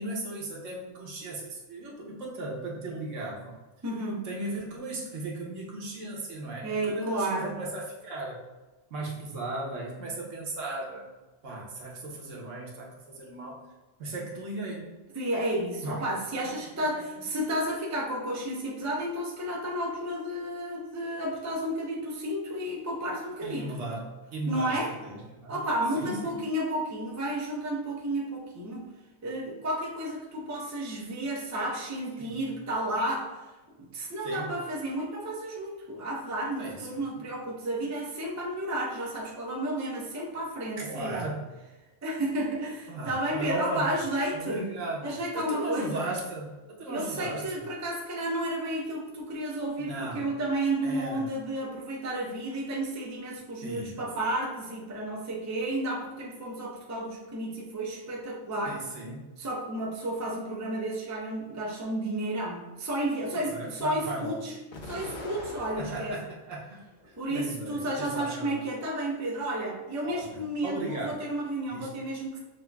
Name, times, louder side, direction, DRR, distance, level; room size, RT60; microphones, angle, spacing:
voice 1, 0.0-3.5 4.2-8.4 8.9-11.1 11.4-13.6 14.0-14.9 15.8-16.0 16.9-17.0 23.4-25.6 25.9-26.3 32.2-32.4 34.2-34.5 36.6-37.0 40.8-41.5 42.9-43.9 44.3-47.5 49.8-50.3 50.8-51.3 53.6-54.0 58.7-59.2 63.3-64.4 65.7-66.6 67.1-68.7 70.0-71.2 71.7-71.9, right 2 dB, 75° right, -2 dB, 1.2 m, -36 dB
voice 2, 3.8-4.3 6.6-7.6 15.1-23.7 24.5-24.9 25.5-28.9 29.2-33.4 33.8-41.3 42.0-44.7 45.0-46.1 46.9-58.8 59.4-64.6 64.8-66.2 67.2-72.4, right 1 dB, 20° right, -2 dB, 0.5 m, -32 dB
Explosion, 64.7-66.4 66.9-67.8, left 2 dB, 50° left, 0.7 m, -43 dB
6.3 x 2.7 x 2.3 m, 1.1 s
omnidirectional pair, 1.3 m